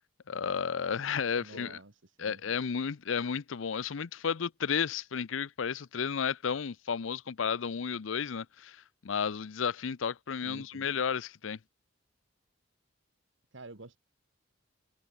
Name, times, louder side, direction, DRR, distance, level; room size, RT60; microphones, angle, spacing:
voice 1, 0.3-1.8 2.2-11.6, left 6 dB, 75° left, 0.6 m, -33 dB
voice 2, 1.4-2.4 10.4-10.9 13.5-14.0, right 2 dB, 70° right, 1.7 m, -49 dB
head